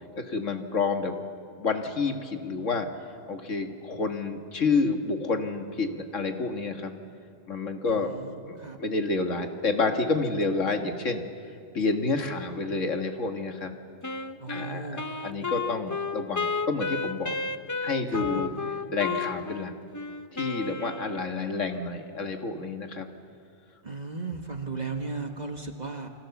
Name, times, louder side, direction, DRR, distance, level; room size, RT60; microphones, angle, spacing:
voice 1, 0.2-1.1 1.6-2.9 3.3-6.9 7.5-8.1 8.5-11.2 11.7-13.7 14.5-17.3 17.8-18.5 18.9-19.7 20.3-23.1, left 3 dB, 70° left, 5 dB, 2.1 m, -29 dB
voice 2, 7.9-8.8 14.4-15.0 18.1-18.7 23.8-26.1, right 3 dB, 35° right, 4 dB, 1.6 m, -36 dB
Wind instrument woodwind instrument, 14.0-21.5, left 4 dB, 30° left, 0.3 m, -33 dB
29.0 x 24.0 x 7.2 m, 2.4 s
omnidirectional pair, 1.4 m